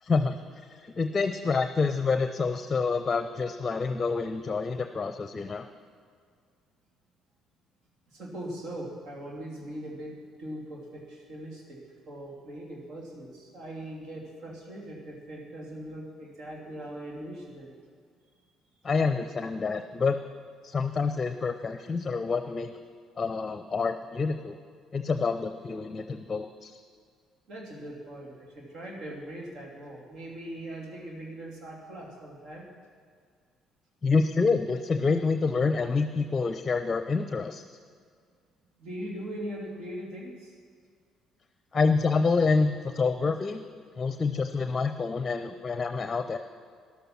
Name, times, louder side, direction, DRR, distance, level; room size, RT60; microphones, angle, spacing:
voice 1, 0.0-5.7 18.8-20.2 20.6-22.8 23.2-24.6 24.9-26.8 34.0-37.6 41.7-43.6 44.0-46.4, left 4 dB, 30° left, 9 dB, 0.6 m, -27 dB
voice 2, 8.1-11.8 12.1-17.7 27.5-32.7 38.8-40.5, right 1 dB, 60° right, -1 dB, 3.1 m, -40 dB
13.5 x 11.5 x 6.0 m, 2.1 s
hypercardioid pair, 50°, 0 cm